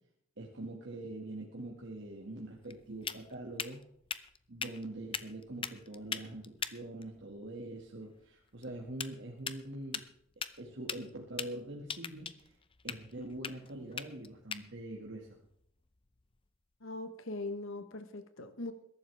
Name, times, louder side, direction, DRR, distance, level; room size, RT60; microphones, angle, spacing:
voice 1, 0.4-3.8 4.5-10.0 10.6-12.5 12.8-15.4, right 1 dB, 65° right, -1 dB, 2.1 m, -44 dB
sound 1, 1.8-16.5, left 6 dB, 25° left, 0.7 m, -44 dB
voice 2, 16.8-18.7, left 2 dB, 80° left, 9 dB, 1.1 m, -41 dB
21.5 x 12.0 x 3.5 m, 0.69 s
head